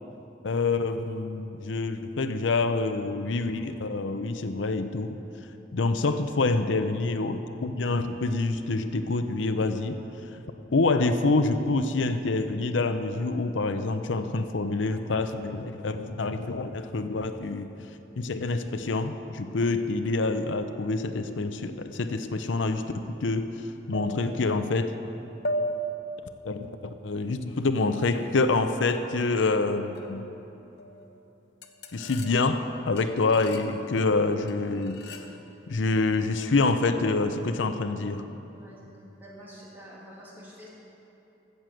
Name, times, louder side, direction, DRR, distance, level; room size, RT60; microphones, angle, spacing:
voice 1, 0.4-5.2 5.7-10.0 10.7-17.7 18.2-23.5 23.9-24.9 26.4-26.7 27.0-30.3 31.9-35.0 35.7-38.3, left 3 dB, 85° left, 9 dB, 0.6 m, -26 dB
sound 1, 23.9-24.6 25.4-26.3 28.1-28.4 29.9-30.4 30.8-31.1 31.6-32.6 33.0-33.7 34.5-35.4, right 1 dB, 60° left, 0.9 m, -36 dB
voice 2, 39.2-40.7, equal, 10° right, -7 dB, 2.8 m, -47 dB
13.5 x 7.6 x 7.7 m, 3.0 s
head